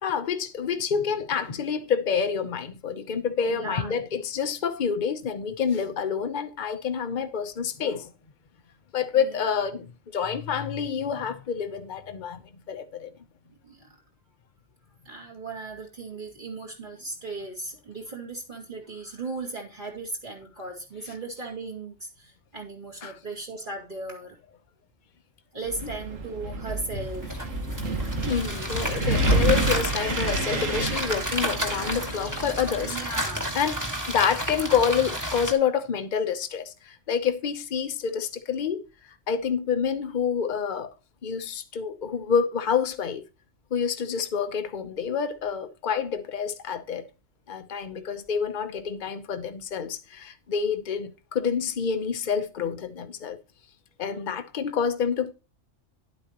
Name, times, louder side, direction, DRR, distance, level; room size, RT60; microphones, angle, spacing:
voice 1, 0.0-8.1 8.9-12.4 12.7-13.1 23.0-23.2 28.3-33.0 33.5-33.8 34.1-38.8 39.3-40.9 41.2-43.2 43.7-47.0 47.5-53.4 54.0-55.3, left 7 dB, 40° left, 0.9 m, -28 dB
voice 2, 3.5-3.9 9.1-9.7 13.6-13.9 15.0-24.4 25.5-27.4 29.6-29.9 32.8-33.5, right 3 dB, 40° right, 2.6 m, -37 dB
Wind, 25.6-33.0, right 2 dB, 75° right, 1.8 m, -29 dB
sound 1, 27.0-35.5, equal, 15° right, 1.7 m, -31 dB
11.0 x 8.2 x 2.9 m
omnidirectional pair, 1.3 m